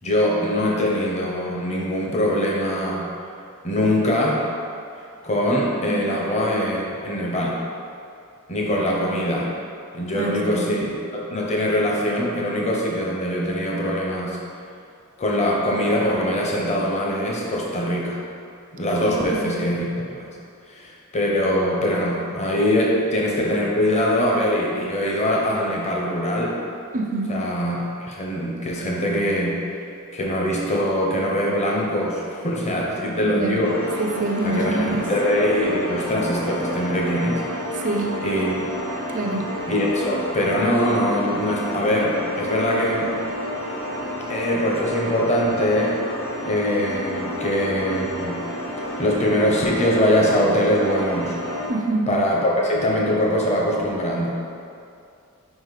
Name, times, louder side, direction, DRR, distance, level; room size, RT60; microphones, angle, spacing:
voice 1, 0.0-3.1 3.6-4.4 5.2-7.6 8.5-9.5 9.9-14.4 15.2-18.2 18.7-20.3 20.7-26.5 27.3-29.6 30.1-33.8 34.4-37.9 38.2-38.6 39.6-43.2 44.3-46.0 46.5-48.4 49.0-51.4 52.1-54.4, equal, 30° left, -3 dB, 0.8 m, -22 dB
voice 2, 10.1-10.7 19.1-19.5 26.9-27.4 33.3-33.6 34.0-35.1 37.8-38.2 39.1-39.5 51.7-52.1, right 2 dB, 35° right, 2 dB, 0.5 m, -26 dB
sound 1, 33.6-51.7, left 1 dB, 60° left, 1.1 m, -30 dB
5.0 x 4.8 x 4.0 m, 2.5 s
head